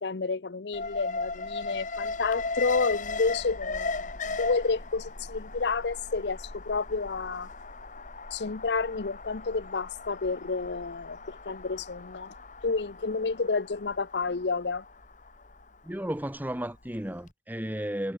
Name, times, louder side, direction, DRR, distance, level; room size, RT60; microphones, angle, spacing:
voice 1, 0.0-7.5 8.3-12.3 12.6-14.8, left 4 dB, 70° left, 0.7 m, -30 dB
Alarm, 0.7-16.8 17.2-17.3, left 3 dB, 45° left, 2.0 m, -37 dB
voice 2, 15.8-18.2, right 1 dB, 10° right, 1.3 m, -33 dB
head